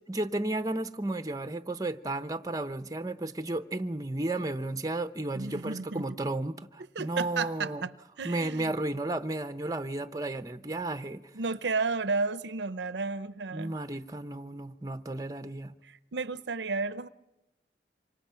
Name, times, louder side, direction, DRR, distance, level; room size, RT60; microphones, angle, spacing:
voice 1, 0.1-7.8 8.2-11.2 13.5-15.7, right 2 dB, 20° right, 0.8 m, -33 dB
voice 2, 5.3-6.0 6.9-8.7 11.3-13.7 15.8-17.1, right 4 dB, 80° right, 0.7 m, -32 dB
27.0 x 25.5 x 5.7 m
head